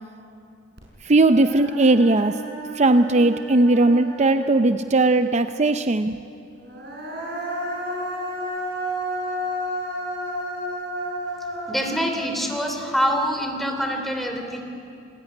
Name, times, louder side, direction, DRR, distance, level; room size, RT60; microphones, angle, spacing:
Human voice, 0.8-0.9 1.2-4.9 6.6-13.8, equal, 60° right, 7.0 m, -32 dB
voice 1, 1.0-2.4 2.7-6.2, right 2 dB, 35° right, 9 dB, 0.6 m, -18 dB
voice 2, 11.7-14.6, equal, ahead, 3 dB, 3.1 m, -25 dB
28.5 x 20.0 x 9.8 m, 2.6 s
head